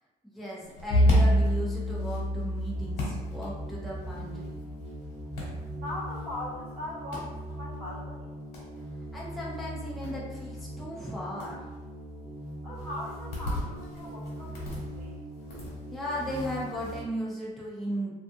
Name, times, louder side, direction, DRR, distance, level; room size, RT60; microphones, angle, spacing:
voice 1, 0.2-4.5 9.1-11.7 15.9-18.1, equal, ahead, -6 dB, 0.6 m, -36 dB
sound 1, 0.6-17.0, left 2 dB, 75° left, 1.2 m, -41 dB
Bowed string instrument, 0.9-5.5, equal, 60° left, 0.6 m, -27 dB
sound 2, 2.7-17.0, equal, 40° right, 0.6 m, -41 dB
voice 2, 5.7-8.3 12.6-15.1, left 1 dB, 75° right, -10 dB, 0.9 m, -40 dB
2.4 x 2.4 x 2.6 m, 1.1 s
cardioid pair, 110°, 17 cm